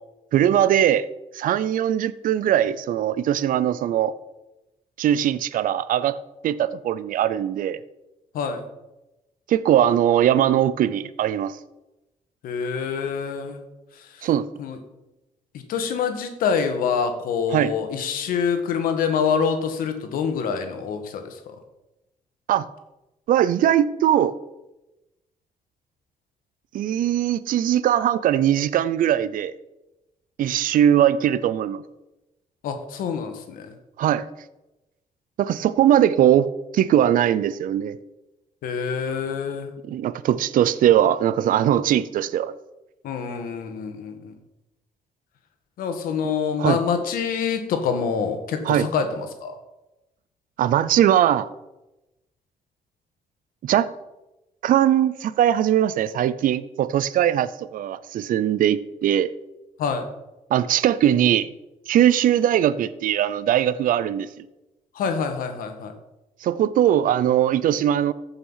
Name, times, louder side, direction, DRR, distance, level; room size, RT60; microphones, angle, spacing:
voice 1, 0.3-1.1 1.3-4.1 5.0-6.2 6.4-7.8 9.5-11.6 14.2-14.4 17.5-17.7 22.5-22.7 23.3-24.3 26.7-29.5 30.4-31.8 34.0-34.2 35.4-38.0 39.8-42.5 46.6-46.8 48.6-48.9 50.6-51.5 53.6-53.9 54.6-59.3 60.5-61.5 61.9-64.4 66.4-68.1, right 11 dB, 75° right, 16 dB, 0.5 m, -20 dB
voice 2, 8.3-8.7 12.4-13.6 13.9-14.3 14.6-14.8 15.7-21.6 32.6-33.7 38.6-39.7 43.0-44.3 45.8-49.6 59.8-60.0 64.9-65.9, left 6 dB, 90° left, 6 dB, 1.5 m, -26 dB
14.0 x 5.8 x 5.6 m, 0.98 s
cardioid pair, 85°, 14 cm